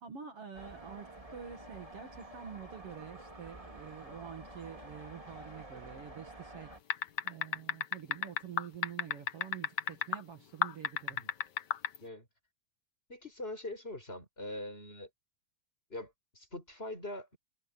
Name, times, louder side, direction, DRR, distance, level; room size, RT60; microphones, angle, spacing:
voice 1, 0.0-11.3, right 8 dB, 55° right, 2.8 m, -47 dB
sound 1, 0.5-6.8, right 1 dB, 10° right, 3.6 m, -50 dB
sound 2, 6.9-10.2 10.6-12.0, left 9 dB, 70° left, 1.0 m, -31 dB
voice 2, 13.1-15.1 15.9-17.4, left 1 dB, 20° left, 5.9 m, -43 dB
omnidirectional pair, 3.3 m